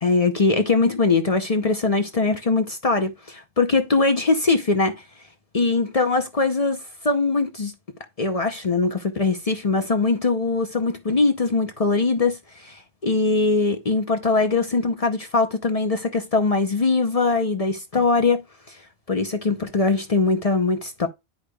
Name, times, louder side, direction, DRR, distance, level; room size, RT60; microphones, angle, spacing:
voice 1, 0.0-5.0 5.5-6.8 7.0-7.7 8.2-18.4 18.7-18.8 19.1-21.1, left 3 dB, 40° left, 0.7 m, -21 dB
10.5 x 5.0 x 2.3 m
omnidirectional pair, 1.1 m